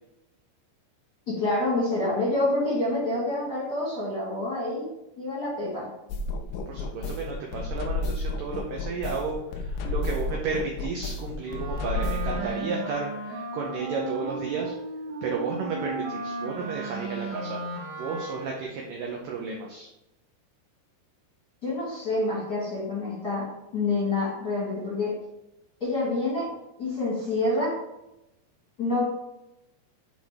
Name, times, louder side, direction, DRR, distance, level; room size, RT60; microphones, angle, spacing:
voice 1, 1.3-4.9 5.2-5.9 21.6-25.2 25.8-26.5 26.8-27.8 28.8-29.0, left 2 dB, 35° left, -7 dB, 1.7 m, -27 dB
sound 1, 6.1-12.5, left 3 dB, 85° left, 2.0 m, -31 dB
voice 2, 6.7-14.7 15.2-17.6 18.0-19.9, right 4 dB, 80° right, 0 dB, 1.9 m, -33 dB
Wind instrument woodwind instrument, 11.4-18.7, right 2 dB, 65° right, 1.5 m, -35 dB
7.7 x 5.0 x 3.5 m, 0.89 s
omnidirectional pair, 5.0 m